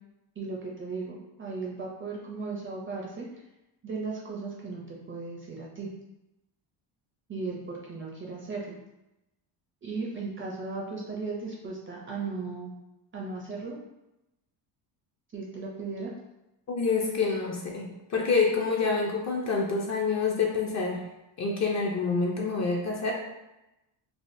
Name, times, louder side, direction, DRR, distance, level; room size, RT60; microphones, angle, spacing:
voice 1, 0.4-3.3 3.8-5.9 7.3-8.8 9.8-12.7 13.1-13.8 15.3-16.1, right 4 dB, 25° right, -3 dB, 0.4 m, -36 dB
voice 2, 16.7-21.0 21.4-23.1, left 4 dB, 35° left, -1 dB, 0.4 m, -27 dB
3.4 x 2.1 x 2.5 m, 0.95 s
cardioid pair, 125°, 50 cm